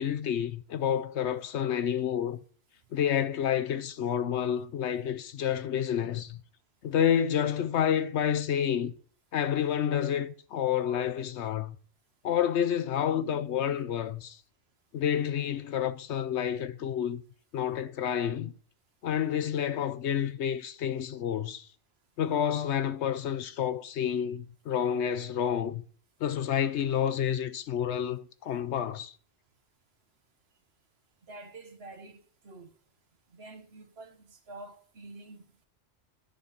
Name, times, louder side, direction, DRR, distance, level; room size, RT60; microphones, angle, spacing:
voice 1, 0.0-2.4 2.9-6.4 6.8-8.9 9.3-11.8 12.2-14.4 14.9-17.2 17.5-18.5 19.0-21.7 22.2-25.8 26.2-29.1, left 9 dB, 70° left, 0.9 m, -29 dB
voice 2, 31.3-32.7 33.3-35.7, right 2 dB, 60° right, 1.3 m, -48 dB
10.0 x 4.0 x 7.1 m
omnidirectional pair, 1.2 m